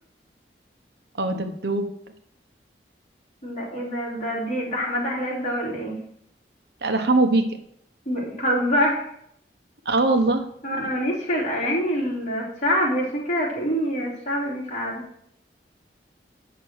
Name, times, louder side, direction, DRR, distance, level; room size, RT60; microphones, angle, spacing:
voice 1, 1.2-1.9 6.8-7.5 9.8-10.5, right 2 dB, 70° right, 6 dB, 1.1 m, -21 dB
voice 2, 3.4-6.0 8.0-9.0 10.6-15.0, equal, 40° left, -5 dB, 3.5 m, -25 dB
9.0 x 6.0 x 6.4 m, 0.71 s
head